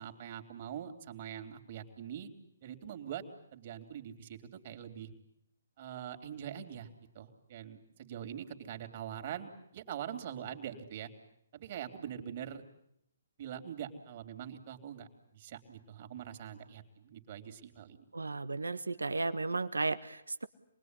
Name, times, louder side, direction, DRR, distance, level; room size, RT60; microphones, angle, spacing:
voice 1, 0.0-2.3 2.6-3.2 3.5-4.4 4.6-5.1 5.8-6.9 7.1-11.1 11.5-12.6 13.4-18.1, right 9 dB, 45° right, 5 dB, 3.7 m, -43 dB
voice 2, 18.1-20.4, right 3 dB, 85° right, 13 dB, 1.4 m, -34 dB
27.5 x 21.0 x 9.9 m, 0.76 s
figure-of-eight pair, 140°, 0 cm